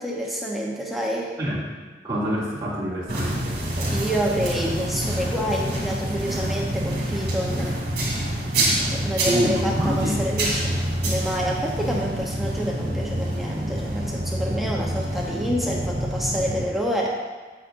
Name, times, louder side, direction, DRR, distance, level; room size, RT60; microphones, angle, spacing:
voice 1, 0.0-1.3 3.9-7.8 8.9-10.7 11.0-17.2, equal, ahead, -4 dB, 0.7 m, -28 dB
voice 2, 2.0-3.6 9.2-10.1, equal, 20° right, -10 dB, 2.4 m, -26 dB
sound 1, 3.1-16.7, right 1 dB, 60° right, 2.6 m, -27 dB
8.5 x 8.2 x 2.5 m, 1.3 s
head